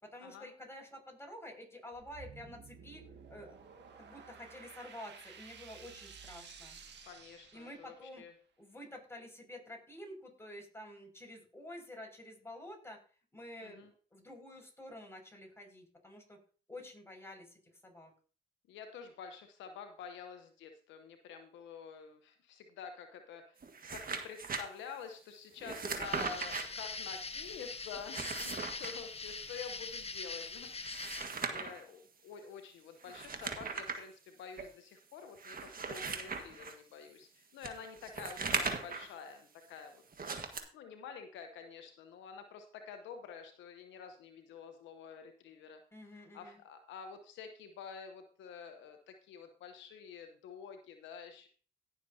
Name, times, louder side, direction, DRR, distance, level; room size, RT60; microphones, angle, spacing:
voice 1, 0.0-3.0 3.3-3.6 4.0-6.8 7.5-8.2 8.6-13.0 13.3-16.4 16.7-18.1 45.9-46.6, left 1 dB, 15° left, 1 dB, 5.8 m, -49 dB
sound 1, 1.9-8.2, right 6 dB, 70° right, 1.9 m, -54 dB
voice 2, 7.1-8.3 13.6-13.9 18.7-23.6 23.9-40.0 40.7-45.8 46.1-51.5, left 6 dB, 85° left, 6 dB, 1.0 m, -49 dB
sound 2, 23.6-24.6 25.6-26.6 27.9-28.9 30.7-31.8 33.0-34.0 34.6-34.7 35.4-36.7 37.6-39.1 40.1-40.6, right 4 dB, 50° right, 1.7 m, -38 dB
sound 3, 26.0-31.3, left 4 dB, 35° left, 1.0 m, -42 dB
17.5 x 6.8 x 2.8 m, 0.41 s
supercardioid pair, 45°, 19 cm